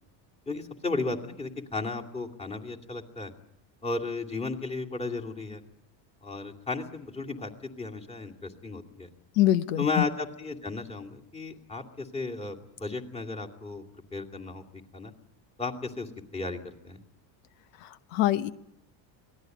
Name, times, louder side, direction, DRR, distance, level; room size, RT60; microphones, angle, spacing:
voice 1, 0.5-3.3 3.8-5.6 6.2-9.1 9.8-13.8 14.1-14.6 14.9-15.1 15.6-17.0, left 3 dB, 10° left, 2 dB, 2.6 m, -34 dB
voice 2, 9.3-10.0 17.8-18.5, left 13 dB, 80° left, 13 dB, 1.1 m, -25 dB
25.5 x 19.0 x 9.1 m, 0.77 s
cardioid pair, 135°, 50 cm